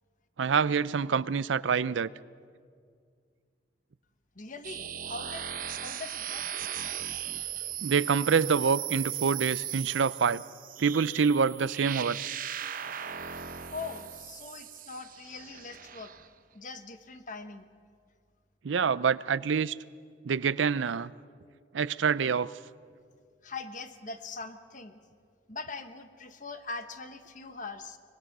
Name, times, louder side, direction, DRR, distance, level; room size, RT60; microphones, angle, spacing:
voice 1, 0.4-2.1 7.8-10.4 10.8-12.3 18.6-19.8 20.2-21.1 21.7-22.5, right 6 dB, 85° right, 18 dB, 0.5 m, -26 dB
voice 2, 4.3-6.5 13.7-16.1 16.5-17.6 23.4-25.0 25.5-28.0, left 3 dB, 45° left, 8 dB, 1.3 m, -42 dB
sound 1, 4.6-16.3, right 10 dB, 50° right, 0.8 m, -38 dB
24.0 x 21.5 x 6.1 m, 2.1 s
head